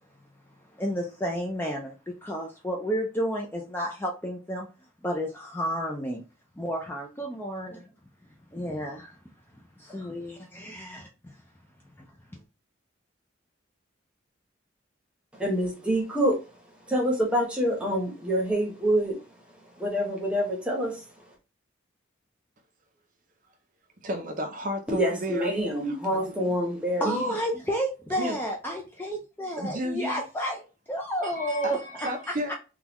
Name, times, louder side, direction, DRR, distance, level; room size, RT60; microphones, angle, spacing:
voice 1, 0.8-1.9 2.2-4.7 5.0-6.2 6.6-7.8 8.5-9.2 9.8-11.0 12.0-12.1 27.0-30.6 30.9-31.8, equal, 10° left, 0.4 m, -31 dB
voice 2, 15.3-16.4 16.9-19.2 19.7-21.0 24.9-27.2, equal, 5° right, 1.0 m, -26 dB
voice 3, 24.0-26.4 27.0-27.4 28.2-28.4 29.6-30.2 31.2-32.5, equal, 40° right, 0.5 m, -33 dB
3.6 x 2.3 x 2.9 m
head